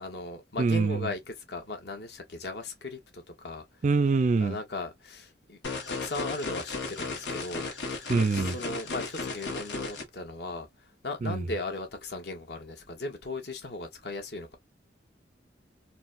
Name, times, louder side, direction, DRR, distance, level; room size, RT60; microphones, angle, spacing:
voice 1, 0.0-3.6 4.4-5.6 5.9-14.6, left 2 dB, 65° left, 1.1 m, -38 dB
voice 2, 0.6-1.1 3.8-4.6 8.1-8.6 11.2-11.4, right 4 dB, 40° right, 0.4 m, -25 dB
sound 1, 5.6-10.0, left 4 dB, 80° left, 1.3 m, -35 dB
4.0 x 2.2 x 2.5 m
head